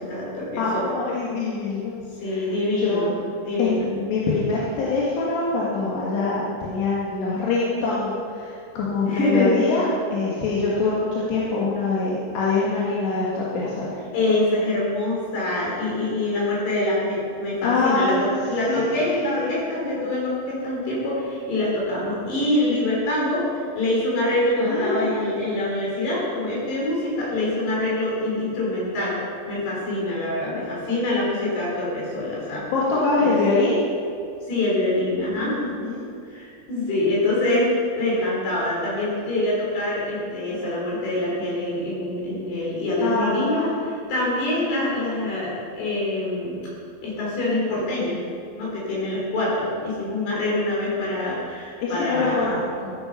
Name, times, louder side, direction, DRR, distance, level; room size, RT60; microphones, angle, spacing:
voice 1, 0.0-0.9 2.2-3.1 3.4-3.9 9.0-9.5 14.1-18.2 18.5-29.2 29.5-32.6 33.2-33.3 34.5-35.6 36.3-46.6 47.0-48.2 48.6-52.5, left 1 dB, 70° left, -5 dB, 6.0 m, -25 dB
voice 2, 0.6-1.9 2.2-3.2 3.6-14.0 17.6-18.3 18.7-19.5 24.7-25.1 32.7-33.8 35.4-36.1 43.0-43.7 51.8-53.0, left 3 dB, 90° left, -6 dB, 3.9 m, -24 dB
14.0 x 10.0 x 5.6 m, 2.4 s
omnidirectional pair, 4.8 m